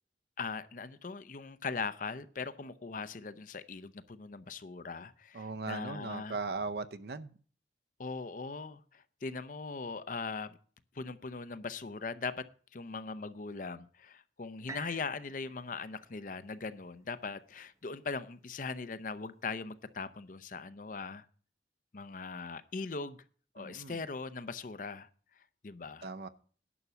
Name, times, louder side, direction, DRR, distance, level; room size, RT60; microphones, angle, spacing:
voice 1, 0.4-6.4 8.0-10.6 10.9-21.3 21.9-23.2 23.5-25.1 25.6-26.1, left 4 dB, 45° left, 13 dB, 0.6 m, -40 dB
voice 2, 5.3-7.3 23.6-24.0 26.0-26.3, right 4 dB, 60° right, 13 dB, 0.6 m, -38 dB
sound 1, 14.7-18.6 19.2-19.3, right 3 dB, 15° right, 0.5 m, -52 dB
11.0 x 6.0 x 6.8 m, 0.43 s
head